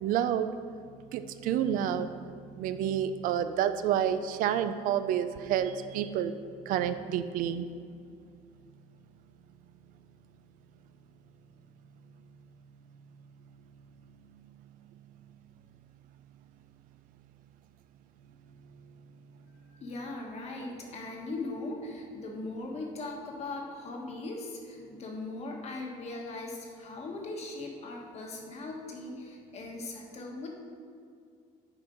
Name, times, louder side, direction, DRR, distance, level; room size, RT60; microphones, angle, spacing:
voice 1, 0.0-0.5 1.1-2.2 2.6-6.3 6.7-7.7, right 9 dB, 70° right, 11 dB, 0.4 m, -29 dB
voice 2, 19.7-30.5, left 2 dB, 45° left, 1 dB, 1.3 m, -39 dB
7.5 x 4.4 x 4.9 m, 2.2 s
cardioid pair, 120°, 15 cm